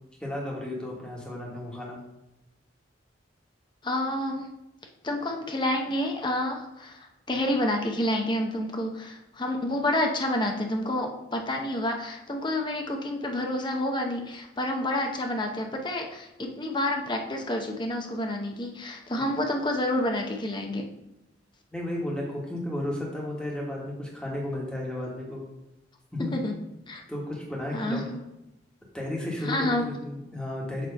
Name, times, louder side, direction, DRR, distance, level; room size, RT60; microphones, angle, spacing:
voice 1, 0.2-2.0 21.7-25.4 26.1-26.3 27.1-28.0 28.9-30.9, left 1 dB, 5° left, -3 dB, 1.3 m, -33 dB
voice 2, 3.8-4.5 5.0-20.9 26.3-26.5 26.9-27.0 27.7-28.0 29.4-29.8, left 1 dB, 25° left, 3 dB, 0.7 m, -29 dB
6.8 x 3.0 x 5.2 m, 0.92 s
head